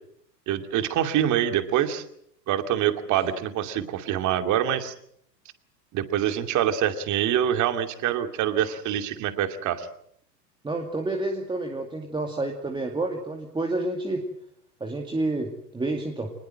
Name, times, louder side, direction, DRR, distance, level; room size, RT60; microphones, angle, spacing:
voice 1, 0.5-2.0 2.5-4.9 5.9-9.9, right 10 dB, 35° right, 8 dB, 2.6 m, -25 dB
voice 2, 10.6-14.3 14.8-16.3, right 2 dB, 10° right, 2 dB, 2.4 m, -29 dB
24.5 x 20.5 x 7.7 m, 0.69 s
hypercardioid pair, 105°, 49 cm